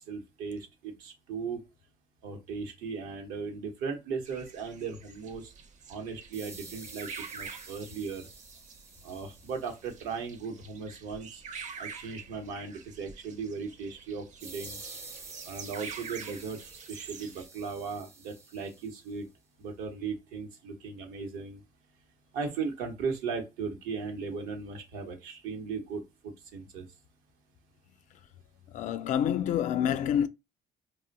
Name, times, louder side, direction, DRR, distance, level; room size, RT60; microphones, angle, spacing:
voice 1, 0.1-1.6 2.2-5.5 5.9-8.3 9.0-11.4 11.8-14.8 15.5-16.6 16.9-19.3 19.6-21.6 22.3-26.8, right 5 dB, 90° right, 0.8 m, -37 dB
sound 1, 4.3-17.5, right 6 dB, 60° right, 0.6 m, -47 dB
sound 2, 6.3-10.1 14.4-19.1, right 3 dB, 20° right, 0.4 m, -49 dB
voice 2, 28.7-30.3, left 9 dB, 60° left, 0.4 m, -27 dB
2.5 x 2.1 x 3.9 m
supercardioid pair, 85°, 14 cm